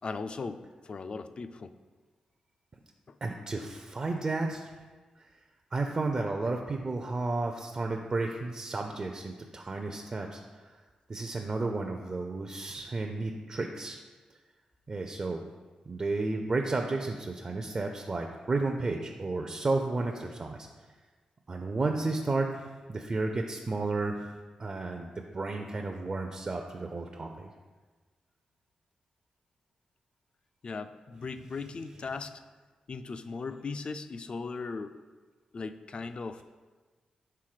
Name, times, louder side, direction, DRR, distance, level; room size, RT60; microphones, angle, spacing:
voice 1, 0.0-1.7 3.1-3.2 30.6-32.4 32.9-35.0 35.5-36.4, left 4 dB, 50° left, 10 dB, 0.3 m, -38 dB
voice 2, 3.2-4.7 5.2-5.3 5.7-10.7 11.1-14.0 14.9-15.4 15.9-20.7 21.5-24.2 24.6-27.5, right 3 dB, 40° right, 3 dB, 0.5 m, -32 dB
5.8 x 3.5 x 4.9 m, 1.3 s
cardioid pair, 70°, 2 cm